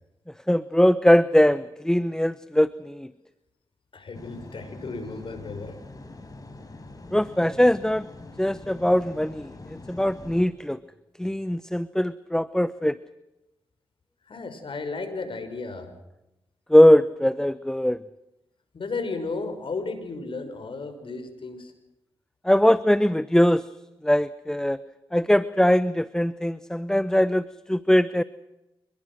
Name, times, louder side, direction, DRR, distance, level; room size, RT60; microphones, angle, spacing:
voice 1, 0.5-3.1 7.1-8.1 8.4-9.5 9.9-10.8 11.2-13.0 16.7-18.0 22.4-23.7 24.0-24.8 25.1-28.2, left 1 dB, 5° left, 15 dB, 0.9 m, -21 dB
voice 2, 3.9-5.8 14.2-15.9 18.7-21.7, left 3 dB, 60° left, 8 dB, 6.1 m, -34 dB
sound 1, 4.1-10.5, left 2 dB, 40° left, 6.0 m, -43 dB
27.0 x 21.5 x 6.4 m, 0.94 s
cardioid pair, 50°, 10 cm